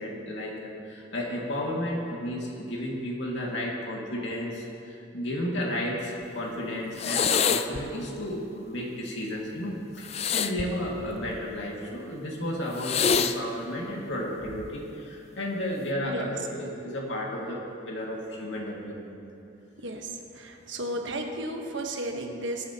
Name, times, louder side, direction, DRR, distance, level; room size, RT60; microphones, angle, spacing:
voice 1, 0.0-19.1, left 1 dB, 85° left, -2 dB, 2.1 m, -33 dB
sound 1, 7.0-7.8 10.0-11.6 12.8-13.4 14.4-14.8, left 6 dB, 35° left, 0.4 m, -26 dB
voice 2, 20.3-22.6, right 1 dB, 85° right, 3 dB, 1.3 m, -33 dB
21.5 x 8.8 x 2.9 m, 2.7 s
head